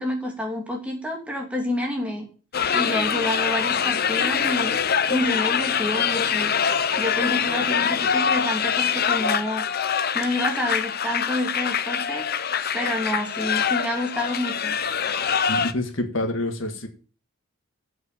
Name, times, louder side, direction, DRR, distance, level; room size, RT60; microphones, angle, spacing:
voice 1, 0.0-2.3 2.7-4.8 5.1-6.5 7.0-9.7 10.1-12.2 12.7-14.8, left 1 dB, 5° right, 0 dB, 2.6 m, -28 dB
sound 1, 2.5-15.7, left 7 dB, 45° left, 0.7 m, -24 dB
voice 2, 15.5-16.9, left 1 dB, 65° left, 5 dB, 1.9 m, -27 dB
8.2 x 7.8 x 7.2 m, 0.39 s
head